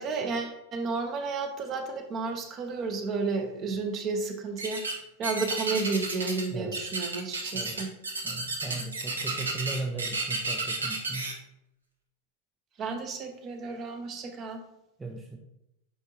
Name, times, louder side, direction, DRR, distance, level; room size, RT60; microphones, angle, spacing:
voice 1, 0.0-7.9 8.6-8.8 12.8-14.6, right 4 dB, 30° right, 5 dB, 0.9 m, -32 dB
sound 1, 4.6-5.0 5.2-6.5 6.7-11.3, right 3 dB, 75° right, 1.0 m, -32 dB
voice 2, 6.5-6.8 7.5-7.8 8.2-11.3 15.0-15.4, right 3 dB, 10° right, 1 dB, 0.6 m, -37 dB
9.3 x 3.6 x 2.9 m, 0.88 s
figure-of-eight pair, 90°, 0 cm